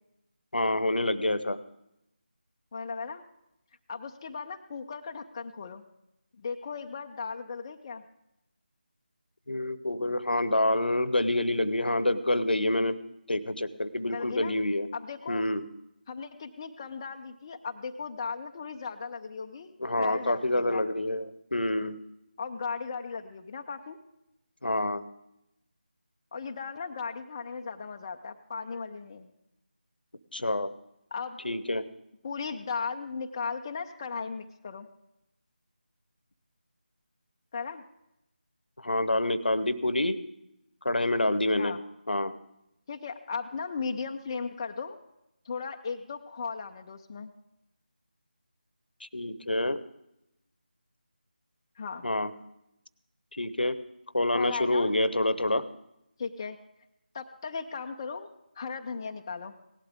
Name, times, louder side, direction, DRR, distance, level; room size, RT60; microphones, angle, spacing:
voice 1, 0.5-1.6 9.5-13.0 13.3-14.9 15.3-15.7 19.8-22.0 24.6-25.0 30.3-30.7 31.4-31.9 38.8-40.2 40.8-41.8 42.1-42.3 49.0-49.8 52.0-52.3 53.3-53.8 54.1-55.6, left 1 dB, 75° left, 15 dB, 0.9 m, -27 dB
voice 2, 2.7-3.2 3.9-5.8 6.4-8.0 14.1-14.5 14.9-15.5 16.1-20.9 22.4-24.0 26.3-29.3 31.1-31.4 32.2-34.9 37.5-37.8 41.5-41.8 42.9-45.0 45.4-47.3 51.8-52.1 54.3-54.9 56.2-56.6 57.1-58.3 58.6-59.5, left 5 dB, 25° left, 4 dB, 0.5 m, -37 dB
17.5 x 12.0 x 3.6 m, 0.84 s
figure-of-eight pair, 160°, 5 cm